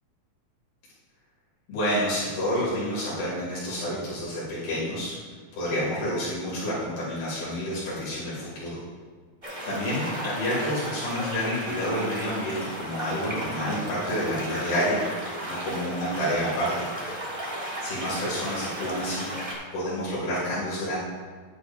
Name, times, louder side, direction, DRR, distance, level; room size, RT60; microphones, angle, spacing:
voice 1, 1.7-5.1 5.6-8.8 9.7-16.7 17.8-19.3 19.7-21.0, equal, 85° left, -8 dB, 4.6 m, -29 dB
sound 1, 9.4-19.5, right 1 dB, 25° right, 0.9 m, -35 dB
10.5 x 10.5 x 2.6 m, 1.5 s
omnidirectional pair, 4.2 m